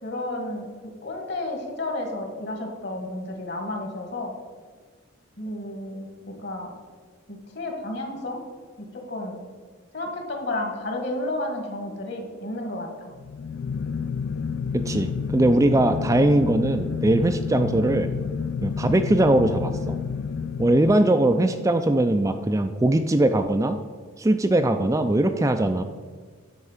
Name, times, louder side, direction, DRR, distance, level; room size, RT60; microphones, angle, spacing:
voice 1, 0.0-4.3 5.4-6.7 7.3-8.4 8.8-9.4 9.9-13.1 21.2-21.5, left 1 dB, 55° left, 2 dB, 1.8 m, -32 dB
sound 1, 13.1-21.5, left 6 dB, 70° left, 0.3 m, -29 dB
voice 2, 14.7-18.1 18.6-20.0 20.6-23.8 24.2-25.8, right 1 dB, 15° right, 7 dB, 0.3 m, -21 dB
9.9 x 4.3 x 7.2 m, 1.5 s
head